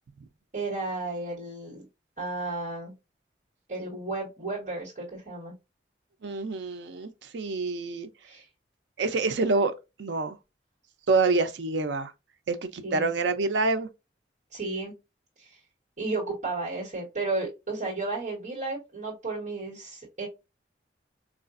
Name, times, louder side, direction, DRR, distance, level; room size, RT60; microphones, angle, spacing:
voice 1, 0.5-1.9 2.2-2.9 3.7-5.5 8.2-8.5 12.8-13.1 14.5-14.9 15.4-15.6 16.0-20.3, right 3 dB, 45° right, 1.3 m, -33 dB
voice 2, 6.2-8.1 9.0-9.7 10.0-10.4 11.1-12.1 12.5-13.9, right 3 dB, 85° right, 0.5 m, -26 dB
4.7 x 2.4 x 2.4 m
head